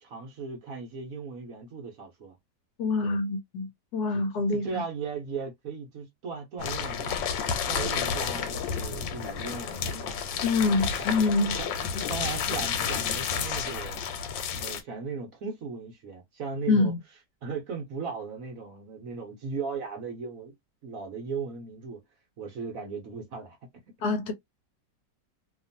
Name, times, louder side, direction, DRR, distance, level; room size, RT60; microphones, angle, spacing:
voice 1, 0.0-2.4 3.0-3.2 4.1-4.2 4.5-7.2 7.7-10.2 11.0-11.1 11.6-11.7 12.1-14.0 14.5-16.9 17.4-20.5 20.8-22.0 22.4-23.6, right 5 dB, 60° right, 1.1 m, -37 dB
voice 2, 2.8-4.8 10.4-11.6 16.7-17.0 24.0-24.3, left 3 dB, 70° left, 1.2 m, -25 dB
sound 1, 6.6-14.8, left 7 dB, 85° left, 1.4 m, -31 dB
2.9 x 2.5 x 2.5 m
omnidirectional pair, 2.0 m